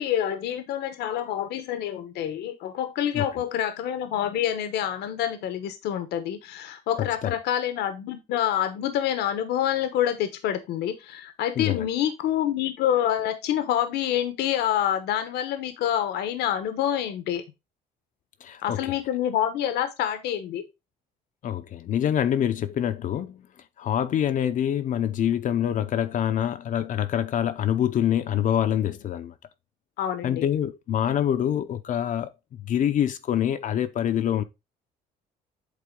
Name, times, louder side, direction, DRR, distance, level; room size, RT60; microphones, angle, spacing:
voice 1, 0.0-17.4 18.6-20.7 30.0-30.5, left 10 dB, 80° left, 1.0 m, -27 dB
voice 2, 7.0-7.3 11.6-11.9 18.4-19.0 21.4-23.5 23.8-29.3 30.2-34.4, left 10 dB, 50° left, 0.6 m, -25 dB
8.5 x 3.6 x 3.6 m
cardioid pair, 110°, 17 cm